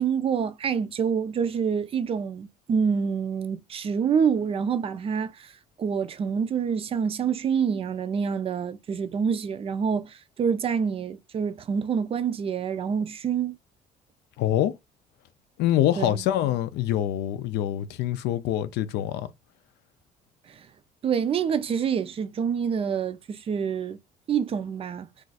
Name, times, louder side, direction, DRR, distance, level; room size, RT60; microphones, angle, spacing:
voice 1, 0.0-5.5 5.8-13.6 16.0-16.2 21.0-24.0 24.3-25.1, right 7 dB, 35° right, 0.4 m, -27 dB
voice 2, 14.4-14.7 15.6-19.3, left 12 dB, 80° left, 0.4 m, -25 dB
2.5 x 2.3 x 3.9 m
cardioid pair, 110°, 17 cm